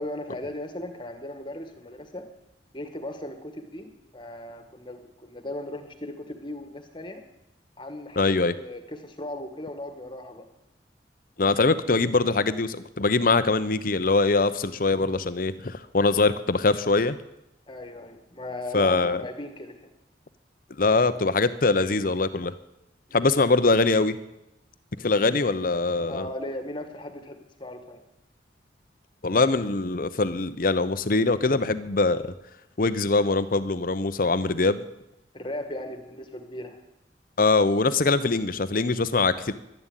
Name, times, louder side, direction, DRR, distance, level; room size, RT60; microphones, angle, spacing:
voice 1, 0.0-2.2 2.7-7.2 7.8-10.5 17.7-19.9 23.1-23.3 26.1-28.0 35.3-36.8, left 1 dB, 25° left, 7 dB, 1.7 m, -37 dB
voice 2, 8.2-8.5 11.4-17.2 18.7-19.2 20.8-22.6 23.1-24.2 25.0-26.3 29.2-32.2 32.8-34.8 37.4-39.5, left 3 dB, 50° left, 13 dB, 0.8 m, -23 dB
12.0 x 11.0 x 9.1 m, 0.90 s
head